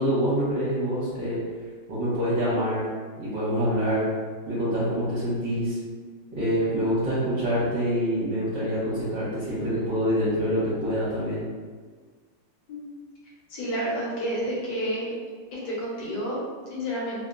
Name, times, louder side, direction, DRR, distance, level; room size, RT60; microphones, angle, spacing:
voice 1, 0.0-1.4 1.9-2.8 3.2-4.1 4.5-5.8 6.3-11.4, equal, 65° right, -12 dB, 1.4 m, -26 dB
voice 2, 13.5-15.1 15.6-17.3, equal, 65° left, -5 dB, 1.1 m, -30 dB
3.4 x 2.1 x 2.4 m, 1.5 s
omnidirectional pair, 2.3 m